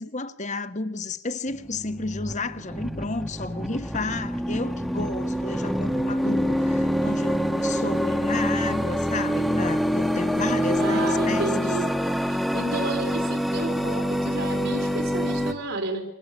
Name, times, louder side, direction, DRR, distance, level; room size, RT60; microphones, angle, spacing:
voice 1, 0.0-11.8, left 3 dB, 35° left, 1.4 m, -32 dB
sound 1, 1.5-15.5, equal, ahead, 1.4 m, -26 dB
voice 2, 10.6-11.9 12.3-16.0, right 2 dB, 70° right, 4.3 m, -31 dB
28.0 x 24.5 x 8.6 m
head